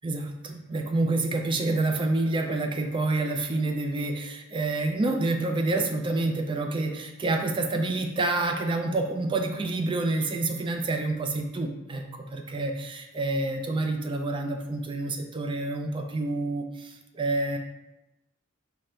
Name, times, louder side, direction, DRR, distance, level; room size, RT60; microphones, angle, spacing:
voice 1, 0.0-17.6, right 2 dB, 25° right, 4 dB, 0.3 m, -28 dB
5.0 x 2.1 x 4.3 m, 0.96 s
head